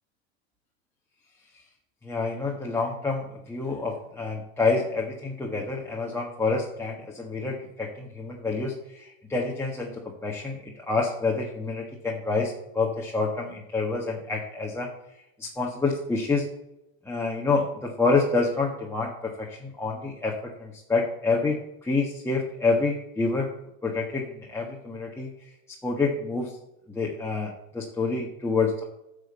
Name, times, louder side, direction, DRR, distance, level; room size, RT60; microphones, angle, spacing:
voice 1, 2.0-14.9 15.4-16.5 17.0-23.5 23.8-25.5 25.8-26.6 26.9-28.8, left 3 dB, 5° left, -3 dB, 1.5 m, -28 dB
9.2 x 5.2 x 8.0 m, 0.89 s
supercardioid pair, 120°, 37 cm